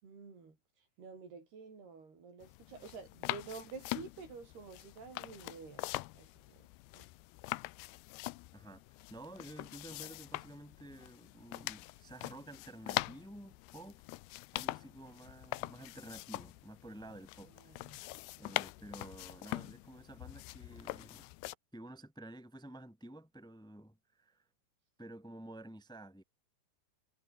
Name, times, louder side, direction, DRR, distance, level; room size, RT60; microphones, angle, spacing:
voice 1, 0.0-5.9 6.1-6.7 6.9-7.1 17.4-18.0 18.4-18.5 18.8-18.9, right 5 dB, 75° right, 8.5 m, -50 dB
sound 1, 2.4-21.6, left 21 dB, 85° left, 2.7 m, -43 dB
voice 2, 9.1-14.0 14.5-17.8 18.4-21.3 21.7-24.4 25.0-26.2, right 1 dB, ahead, 3.3 m, -51 dB
omnidirectional pair, 4.6 m